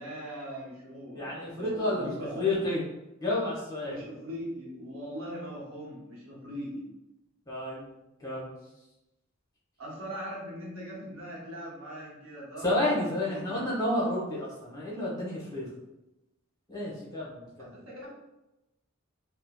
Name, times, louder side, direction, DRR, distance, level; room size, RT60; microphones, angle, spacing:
voice 1, 0.0-2.7 3.8-6.8 9.8-13.6 17.6-18.1, equal, 85° right, -5 dB, 0.8 m, -40 dB
voice 2, 1.2-2.8 3.2-4.0 7.5-7.9 8.2-8.5 12.6-15.7 16.7-17.7, left 1 dB, 20° left, -6 dB, 0.8 m, -30 dB
2.8 x 2.0 x 2.2 m, 0.94 s
head